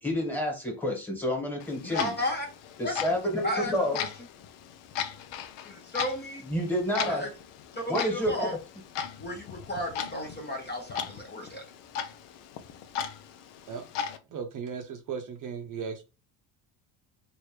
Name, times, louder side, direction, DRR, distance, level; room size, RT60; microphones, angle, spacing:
voice 1, 0.0-2.1 2.8-4.0 6.4-7.2 7.9-8.6, equal, 5° left, 1.6 m, -29 dB
Clock, 1.6-14.2, left 7 dB, 70° left, 0.7 m, -38 dB
voice 2, 1.8-2.5 2.8-2.9 3.4-4.1 5.7-6.4 7.0-7.3 7.8-8.5 9.2-11.6, left 1 dB, 20° left, 0.8 m, -34 dB
voice 3, 14.3-16.0, right 6 dB, 40° right, 0.7 m, -36 dB
3.2 x 2.6 x 3.2 m
supercardioid pair, 100°, 48 cm